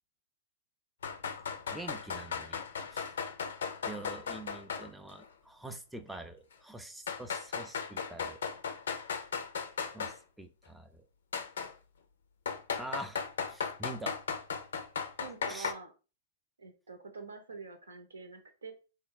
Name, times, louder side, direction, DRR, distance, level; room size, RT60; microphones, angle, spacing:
sound 1, 1.0-4.9 5.2-5.3 6.1-6.2 7.1-10.2 11.3-11.7 12.5-15.7, left 6 dB, 70° left, 0.5 m, -36 dB
voice 1, 1.7-2.6 2.9-3.1 3.8-8.4 9.9-11.0 12.8-13.2 13.5-14.2 15.5-15.7, right 1 dB, 5° right, 6 dB, 0.4 m, -45 dB
voice 2, 15.2-15.9 16.6-18.7, right 4 dB, 80° right, 7 dB, 0.7 m, -46 dB
3.3 x 2.1 x 3.8 m, 0.34 s
figure-of-eight pair, 105°, 0 cm